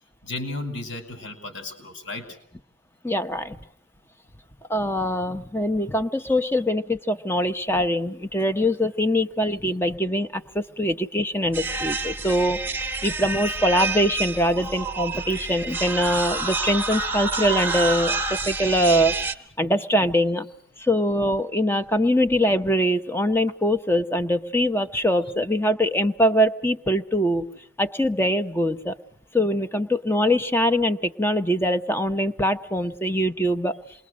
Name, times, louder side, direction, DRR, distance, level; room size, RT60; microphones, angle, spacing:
voice 1, 0.2-2.4 6.2-6.3, left 2 dB, 70° left, 7 dB, 5.1 m, -34 dB
voice 2, 3.0-3.6 4.7-19.1 19.6-20.5 20.8-27.4 27.8-29.0 29.3-33.8, equal, 10° left, 9 dB, 1.0 m, -23 dB
sound 1, 11.5-19.3, right 3 dB, 10° right, 1.3 m, -28 dB
27.5 x 22.5 x 6.3 m, 0.71 s
head